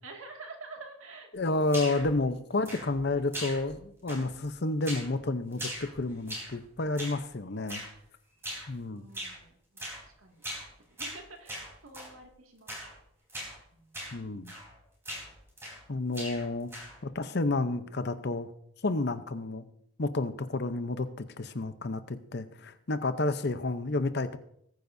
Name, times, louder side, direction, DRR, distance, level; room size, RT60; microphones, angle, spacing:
voice 1, 0.0-1.6 2.1-2.3 3.1-3.2 8.8-10.5 10.9-13.0 13.7-14.0 19.5-19.7, right 3 dB, 75° right, 2 dB, 2.2 m, -49 dB
voice 2, 1.3-7.8 8.7-9.0 14.1-14.5 15.9-16.7 17.0-18.5 18.8-19.6 20.0-24.4, left 2 dB, 50° left, 11 dB, 0.8 m, -30 dB
sound 1, 1.7-2.1 2.6-3.1 3.3-3.8 4.1-4.5 4.8-5.1 5.5-6.6 7.0-7.2 7.7-7.9 8.4-8.7 9.1-9.4 9.8-10.0 10.4-10.7 11.0-12.1 12.7-12.9 13.3-13.6 13.9-14.2 14.5-14.7 15.0-15.9 16.1-17.0, equal, 10° right, 3.9 m, -40 dB
20.5 x 9.3 x 2.7 m, 0.71 s
head